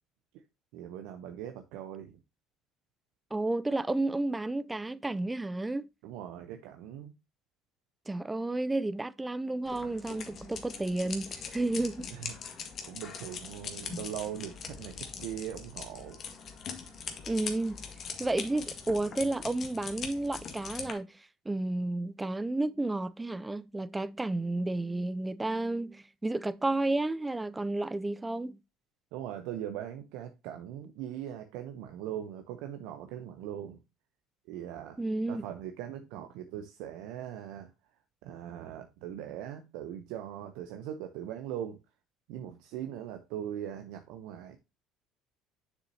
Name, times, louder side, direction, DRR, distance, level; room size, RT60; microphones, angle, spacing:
voice 1, 0.7-2.2 6.0-7.1 12.1-12.3 12.8-16.2 29.1-33.8 34.5-35.0 35.3-37.7 38.2-41.8 42.3-44.6, right 10 dB, 75° right, 0.7 m, -40 dB
voice 2, 3.3-5.8 8.1-12.1 17.3-17.8 18.2-21.1 21.5-28.6 35.0-35.5, right 2 dB, 15° right, 0.5 m, -31 dB
sound 1, 9.7-20.9, left 6 dB, 45° left, 1.6 m, -42 dB
7.1 x 6.8 x 2.8 m
hypercardioid pair, 80°, 0 cm